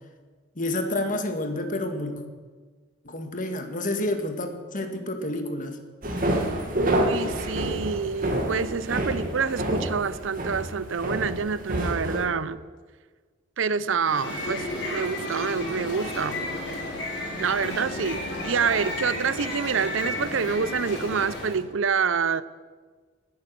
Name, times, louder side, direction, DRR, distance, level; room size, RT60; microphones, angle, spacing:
voice 1, 0.5-2.2 3.0-5.8 16.9-17.0, left 1 dB, 40° left, 6 dB, 1.7 m, -29 dB
sound 1, 6.0-12.3, right 1 dB, 45° right, 2.4 m, -28 dB
voice 2, 6.7-12.6 13.6-16.5 17.4-22.4, right 6 dB, 75° right, 17 dB, 0.6 m, -27 dB
sound 2, 14.0-21.6, left 1 dB, 60° left, 4.9 m, -32 dB
19.0 x 9.6 x 6.8 m, 1.4 s
head